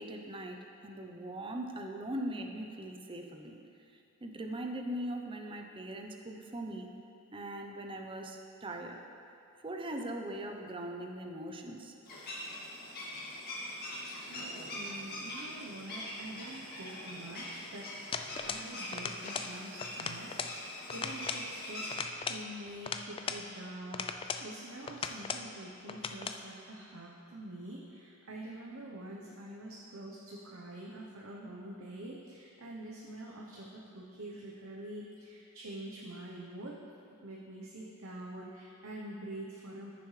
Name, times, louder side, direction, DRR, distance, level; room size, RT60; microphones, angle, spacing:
voice 1, 0.0-3.6 4.2-6.9 7.3-9.0 9.6-11.9, right 1 dB, 25° right, 3 dB, 0.7 m, -40 dB
sound 1, 12.0-22.0, left 1 dB, 50° left, 2.1 m, -43 dB
voice 2, 14.1-24.1 24.4-36.8 37.2-39.9, right 1 dB, 70° right, -3 dB, 0.9 m, -46 dB
sound 2, 18.1-18.7 18.9-19.5 19.8-20.6 20.9-21.5 21.9-23.5 23.9-24.5 24.9-25.5 25.9-26.4, left 5 dB, 25° left, 0.3 m, -38 dB
14.5 x 7.0 x 3.3 m, 2.6 s
head